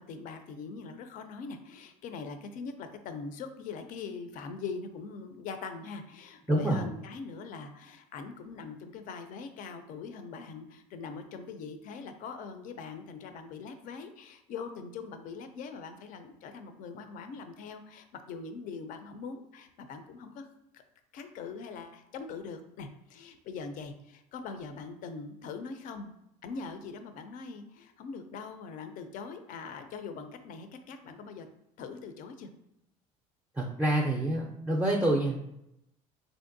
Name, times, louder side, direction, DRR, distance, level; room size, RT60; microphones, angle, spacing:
voice 1, 0.0-20.5 21.1-26.1 26.4-31.5 31.8-32.5, left 5 dB, 60° left, 8 dB, 0.4 m, -42 dB
voice 2, 6.5-6.8 33.6-35.5, right 1 dB, 10° right, -1 dB, 0.4 m, -27 dB
3.3 x 2.6 x 2.6 m, 0.82 s
supercardioid pair, 95°, 16 cm